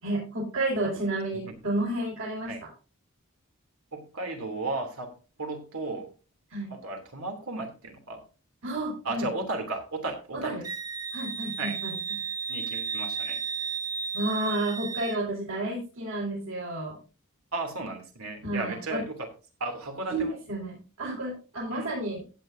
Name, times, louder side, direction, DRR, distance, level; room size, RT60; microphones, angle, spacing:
voice 1, 0.0-2.7 6.5-6.7 8.6-9.3 10.3-10.6 11.1-12.2 14.1-17.0 18.4-19.0 20.1-20.2 20.5-22.2, right 2 dB, 70° right, -6 dB, 5.8 m, -31 dB
voice 2, 3.9-5.1 5.4-6.1 6.7-8.2 9.0-10.6 11.6-11.7 12.5-13.4 17.5-19.3 19.6-20.4 21.7-21.9, right 2 dB, 85° right, 4 dB, 2.9 m, -34 dB
Wind instrument woodwind instrument, 10.6-15.2, right 5 dB, 15° right, 0.5 m, -33 dB
15.5 x 9.5 x 2.7 m, 0.34 s
head